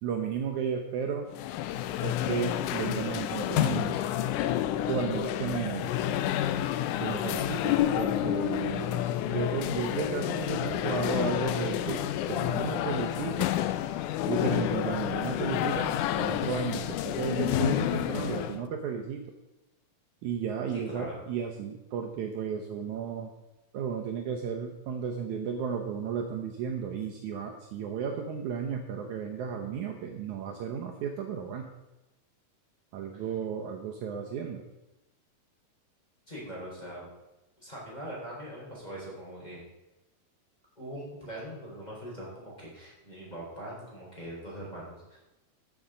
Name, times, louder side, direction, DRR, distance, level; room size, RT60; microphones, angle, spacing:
voice 1, 0.0-1.3 2.0-4.0 4.9-5.9 7.0-12.0 12.3-13.6 14.3-19.2 20.2-23.3 23.7-31.7 32.9-34.6, right 7 dB, 70° right, 3 dB, 2.1 m, -34 dB
sound 1, 1.3-18.6, left 12 dB, 80° left, 1.9 m, -29 dB
voice 2, 20.7-21.2 36.3-37.1 37.6-39.6 40.8-45.2, right 1 dB, 10° left, -5 dB, 4.2 m, -42 dB
14.0 x 7.2 x 5.1 m, 0.98 s
omnidirectional pair, 3.9 m